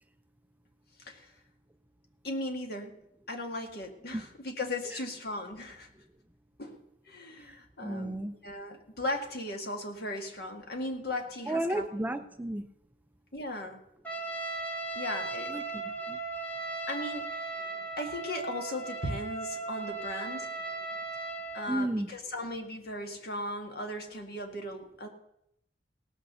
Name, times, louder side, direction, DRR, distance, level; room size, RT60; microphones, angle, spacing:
voice 1, 1.0-1.3 2.2-3.0 3.3-5.9 6.6-6.8 7.1-11.8 13.3-13.8 14.9-15.7 16.9-17.6 18.0-20.5 21.5-25.1, left 1 dB, 60° left, 4 dB, 1.9 m, -37 dB
voice 2, 7.4-8.4 11.5-12.7 15.5-16.2 21.7-22.1, right 1 dB, 10° right, 10 dB, 0.4 m, -33 dB
Trumpet, 14.1-21.7, right 3 dB, 10° left, 1.7 m, -37 dB
17.5 x 6.4 x 6.8 m, 0.80 s
head